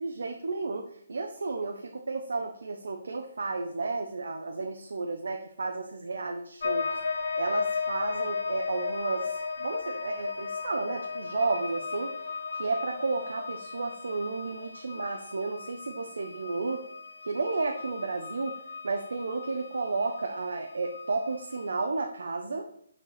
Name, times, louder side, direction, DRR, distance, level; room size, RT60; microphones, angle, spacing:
voice 1, 0.0-12.2 12.5-16.8 17.2-18.6 18.8-22.7, right 3 dB, 80° right, 4 dB, 0.9 m, -32 dB
sound 1, 6.6-21.8, left 5 dB, 70° left, 1.3 m, -36 dB
6.5 x 4.6 x 5.8 m, 0.67 s
hypercardioid pair, 165°, 0 cm